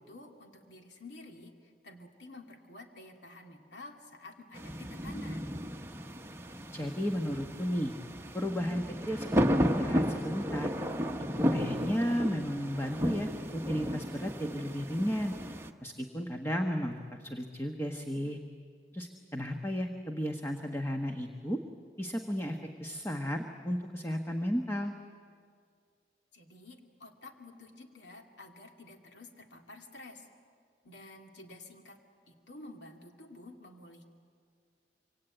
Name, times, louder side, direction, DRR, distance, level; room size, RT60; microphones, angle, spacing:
voice 1, 0.0-5.5 26.3-30.3 30.8-32.0 32.3-34.1, left 2 dB, 80° left, 3 dB, 2.5 m, -50 dB
sound 1, 4.5-15.7, equal, 15° right, 1.0 m, -33 dB
voice 2, 6.7-7.9 8.3-10.7 11.5-15.3 15.8-18.4 18.9-21.6 22.0-24.9, equal, 15° left, 3 dB, 1.2 m, -34 dB
25.5 x 25.0 x 9.0 m, 2.1 s
head